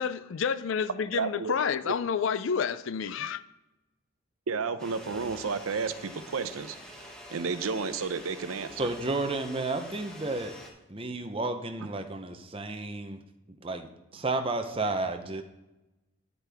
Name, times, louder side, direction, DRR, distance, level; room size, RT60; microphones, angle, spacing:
voice 1, 0.0-3.4, left 6 dB, 65° left, 16 dB, 0.4 m, -29 dB
voice 2, 1.1-1.5 1.9-2.0 4.5-8.9, right 5 dB, 85° right, 12 dB, 0.6 m, -32 dB
sound 1, 4.8-10.7, equal, 5° left, 1.1 m, -46 dB
voice 3, 8.8-10.6 10.9-13.2 13.6-15.4, right 2 dB, 25° right, 7 dB, 0.7 m, -32 dB
9.0 x 8.1 x 3.5 m, 0.97 s
head